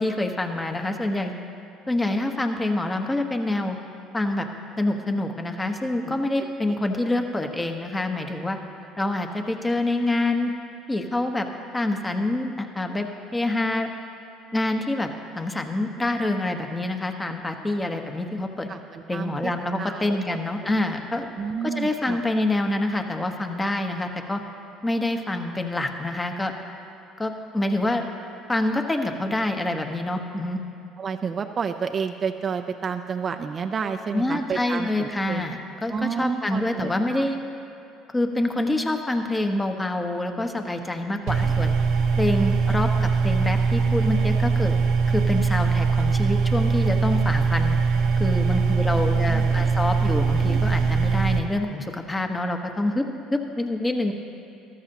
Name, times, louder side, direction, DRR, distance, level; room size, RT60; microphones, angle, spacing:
voice 1, 0.0-1.3 1.9-3.8 4.1-4.5 4.8-8.6 9.0-10.5 10.9-11.5 11.7-13.9 14.5-15.1 15.4-18.7 19.1-21.3 21.6-24.4 24.8-26.5 27.2-28.0 28.5-30.6 34.1-37.4 38.1-41.8 42.2-44.7 45.1-47.8 48.2-53.0 53.3-54.1, left 2 dB, 20° left, 4 dB, 1.1 m, -26 dB
voice 2, 18.7-19.5 19.8-20.7 21.4-22.2 31.0-35.4 35.9-37.2 49.3-49.4, right 6 dB, 40° right, 6 dB, 0.5 m, -30 dB
sound 1, 41.3-51.4, right 5 dB, 70° right, 0.8 m, -21 dB
13.5 x 13.5 x 2.9 m, 2.7 s
hypercardioid pair, 70°, 0 cm